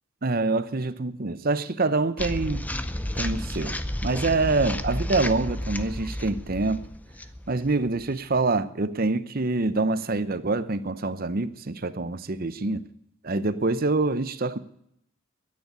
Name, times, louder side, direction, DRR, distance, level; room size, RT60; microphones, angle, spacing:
voice 1, 0.2-2.7 3.1-6.8 7.5-12.8 13.2-14.6, right 3 dB, 45° right, 0.8 m, -26 dB
sound 1, 2.2-8.4, left 1 dB, 5° left, 0.6 m, -32 dB
13.0 x 9.9 x 8.1 m
head